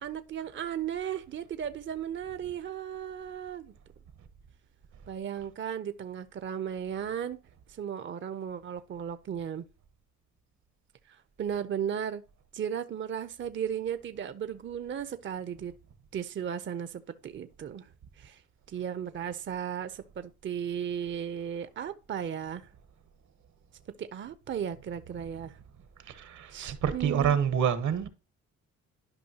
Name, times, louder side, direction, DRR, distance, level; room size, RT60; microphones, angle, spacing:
voice 1, 0.0-3.7 5.1-7.4 7.7-9.7 11.1-12.2 12.5-15.7 16.1-17.9 18.2-18.4 18.7-22.7 24.0-25.5 26.5-27.4, right 9 dB, 40° right, 0.6 m, -35 dB
voice 2, 26.1-28.1, right 8 dB, 70° right, 1.2 m, -27 dB
11.5 x 5.2 x 2.8 m
cardioid pair, 90°, 30 cm